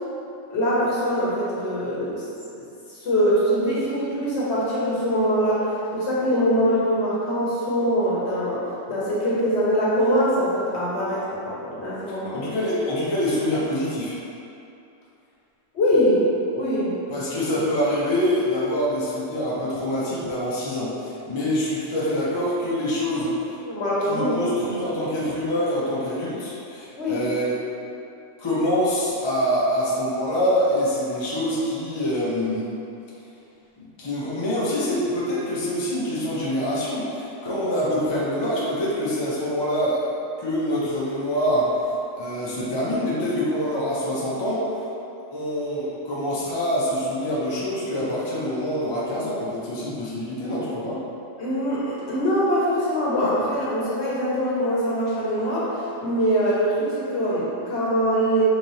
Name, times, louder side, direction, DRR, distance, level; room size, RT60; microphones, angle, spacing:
voice 1, 0.5-2.2 3.0-5.6 5.9-8.6 8.9-12.5 15.7-16.3 16.5-17.0 23.1-23.2 23.7-24.4 27.0-27.2 51.4-55.7 56.0-58.4, equal, 60° left, -8 dB, 1.1 m, -23 dB
voice 2, 12.3-14.2 17.1-23.3 24.0-27.6 28.4-32.7 33.8-40.0 40.4-41.7 42.2-44.9 45.3-51.0, equal, 30° left, -8 dB, 0.5 m, -25 dB
3.9 x 3.3 x 2.7 m, 2.7 s
omnidirectional pair, 1.4 m